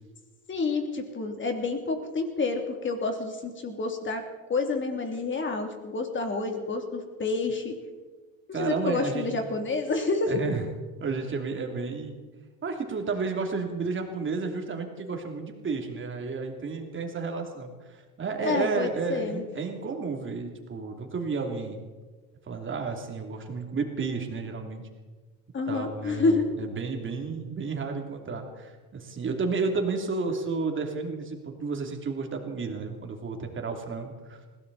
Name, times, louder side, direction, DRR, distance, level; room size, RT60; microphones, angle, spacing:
voice 1, 0.5-4.2 4.5-7.7 8.6-10.4 18.4-19.4 25.5-26.5, left 3 dB, 30° left, 4 dB, 2.9 m, -28 dB
voice 2, 8.5-9.6 10.3-10.7 11.0-12.2 12.6-21.8 22.5-24.8 25.7-34.4, right 4 dB, 30° right, 3 dB, 3.0 m, -32 dB
21.0 x 16.5 x 4.2 m, 1.3 s
supercardioid pair, 110°, 40 cm